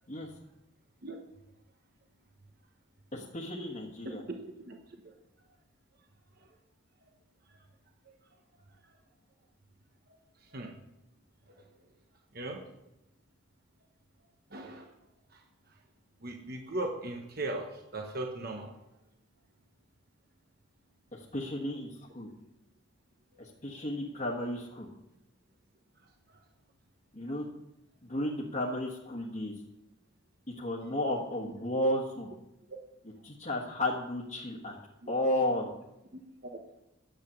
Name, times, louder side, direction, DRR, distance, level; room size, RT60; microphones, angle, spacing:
voice 1, 3.1-4.2 21.1-22.3 23.4-24.9 27.1-27.5 28.1-29.5 30.6-32.3 33.2-34.8 35.1-35.7, left 1 dB, 35° left, -5 dB, 1.4 m, -33 dB
voice 2, 4.3-4.8 5.0-5.1 8.0-8.1 10.4-10.7 11.5-11.6 12.3-12.6 14.5-14.9 15.3-15.4 16.2-18.7 26.3-26.4 30.8-30.9 32.7-32.8 35.0-35.2 36.1-36.6, right 2 dB, 45° right, 3 dB, 1.1 m, -39 dB
10.0 x 8.0 x 6.9 m, 0.89 s
head